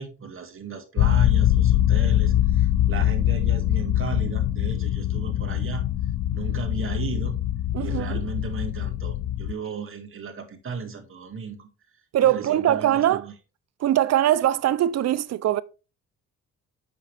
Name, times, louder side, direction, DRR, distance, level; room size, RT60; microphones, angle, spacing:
voice 1, 0.0-6.0 6.3-7.4 7.8-11.7 12.2-13.3, right 5 dB, 45° right, 2.1 m, -35 dB
sound 1, 1.0-9.5, left 12 dB, 55° left, 0.5 m, -23 dB
voice 2, 7.7-8.3 12.1-13.3 13.8-15.6, right 12 dB, 60° right, 0.6 m, -22 dB
7.6 x 6.0 x 3.4 m
cardioid pair, 90°, 30 cm